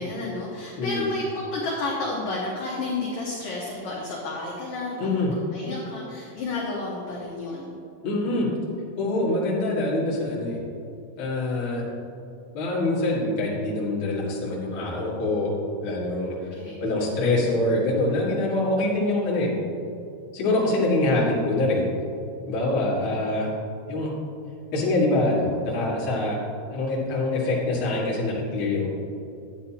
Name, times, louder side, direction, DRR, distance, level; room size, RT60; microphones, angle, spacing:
voice 1, 0.0-5.0 5.5-7.7 16.5-16.9 21.1-21.2, left 2 dB, 75° left, -5 dB, 2.0 m, -31 dB
voice 2, 0.8-1.1 5.0-5.3 8.0-8.5 9.0-10.6 11.2-11.8 12.5-15.5 15.8-16.3 16.8-19.5 20.3-21.9 22.5-23.5 23.9-24.1 24.7-26.4 26.7-28.9, left 2 dB, 60° left, -6 dB, 1.3 m, -24 dB
10.5 x 9.4 x 2.9 m, 2.6 s
omnidirectional pair, 5.5 m